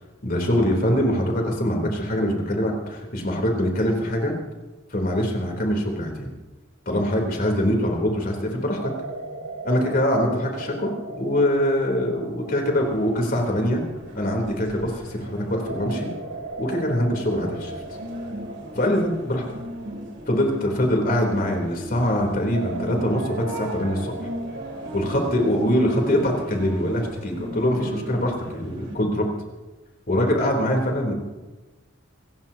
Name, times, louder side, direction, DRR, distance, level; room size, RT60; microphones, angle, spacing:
voice 1, 0.2-4.3 4.9-6.3 6.8-8.9 9.6-10.9 11.2-13.8 14.1-16.1 16.6-17.8 18.7-19.4 20.3-24.1 24.9-29.3 30.1-31.1, equal, 45° left, 1 dB, 3.5 m, -23 dB
sound 1, 8.8-14.7 15.7-21.7 22.5-26.5, right 2 dB, 80° right, 3.4 m, -38 dB
sound 2, 12.8-29.0, right 1 dB, 60° right, 3.8 m, -37 dB
27.0 x 16.0 x 2.9 m, 1.2 s
head